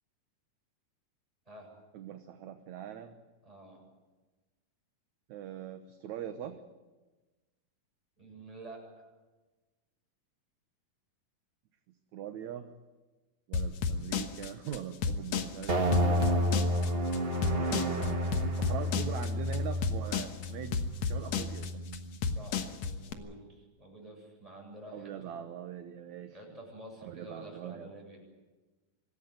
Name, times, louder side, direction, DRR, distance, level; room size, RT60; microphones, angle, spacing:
voice 1, 1.9-3.2 5.3-6.6 12.1-12.7 13.5-16.4 17.5-21.8 24.9-26.6 27.0-27.9, right 9 dB, 65° right, 7 dB, 2.2 m, -42 dB
voice 2, 3.4-3.8 8.2-9.1 22.3-25.1 26.3-28.2, right 1 dB, 10° right, -1 dB, 7.6 m, -49 dB
sound 1, 13.5-23.1, left 5 dB, 60° left, 2.2 m, -32 dB
sound 2, 15.7-22.2, equal, 30° right, 1.0 m, -31 dB
25.5 x 16.5 x 9.5 m, 1.2 s
omnidirectional pair, 4.0 m